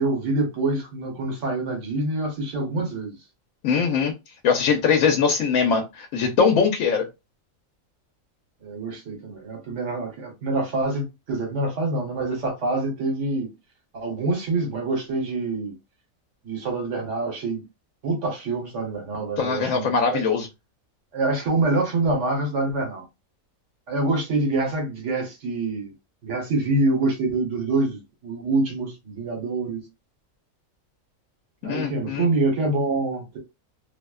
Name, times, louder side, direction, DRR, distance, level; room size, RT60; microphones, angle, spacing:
voice 1, 0.0-3.1 8.6-13.5 13.9-15.7 16.4-17.6 18.0-20.2 21.1-23.0 23.9-25.9 26.2-29.8 31.6-33.4, right 2 dB, 65° right, 1.3 m, -26 dB
voice 2, 3.6-4.1 4.4-7.0 19.4-20.5 31.6-32.3, left 6 dB, 80° left, 1.0 m, -21 dB
2.7 x 2.0 x 2.2 m
omnidirectional pair, 1.4 m